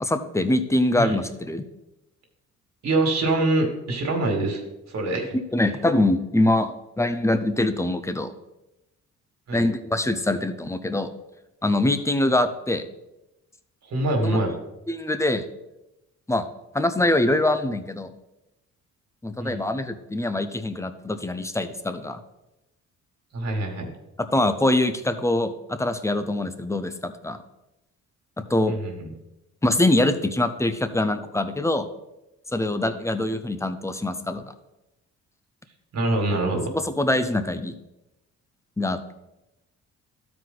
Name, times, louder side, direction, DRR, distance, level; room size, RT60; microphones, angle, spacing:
voice 1, 0.0-1.6 5.5-8.3 9.5-11.1 11.6-12.8 14.2-14.4 14.9-15.4 16.3-16.5 16.7-18.1 19.2-22.2 24.3-27.4 28.4-28.7 29.6-31.9 32.5-34.4 36.3-36.4 36.7-37.7 38.8-39.1, left 1 dB, 10° left, 10 dB, 0.7 m, -24 dB
voice 2, 2.8-4.6 4.9-5.4 9.5-9.6 13.9-14.6 19.4-19.6 23.3-23.9 28.7-29.1 35.9-36.7, right 2 dB, 60° right, 2 dB, 2.1 m, -24 dB
12.5 x 4.8 x 3.9 m, 0.94 s
cardioid pair, 90°, 30 cm